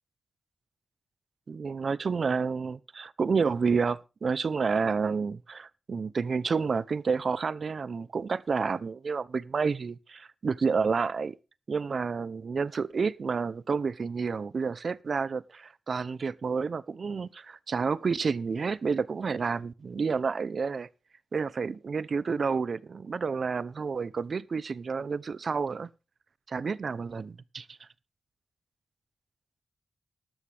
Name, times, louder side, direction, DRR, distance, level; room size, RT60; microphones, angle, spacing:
voice 1, 1.5-11.4 11.7-20.9 21.3-25.9 26.5-27.7, right 5 dB, 55° right, 0.6 m, -30 dB
13.5 x 12.5 x 3.4 m
wide cardioid pair, 110°, 0 cm